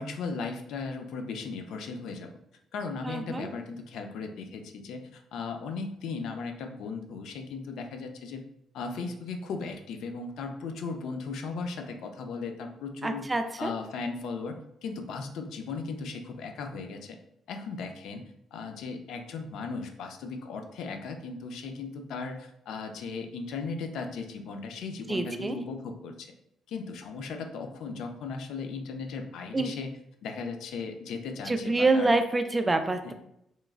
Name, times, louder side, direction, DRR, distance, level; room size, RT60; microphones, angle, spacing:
voice 1, 0.0-2.3 2.7-8.4 8.7-13.3 13.6-17.2 17.5-26.3 26.7-29.9 30.2-32.1, left 4 dB, 80° left, 5 dB, 0.4 m, -37 dB
voice 2, 3.0-3.5 13.0-13.7 25.1-25.6 29.5-29.7 31.5-33.1, right 2 dB, 20° right, 7 dB, 0.3 m, -26 dB
3.0 x 2.4 x 2.4 m, 0.77 s
cardioid pair, 90°, 0 cm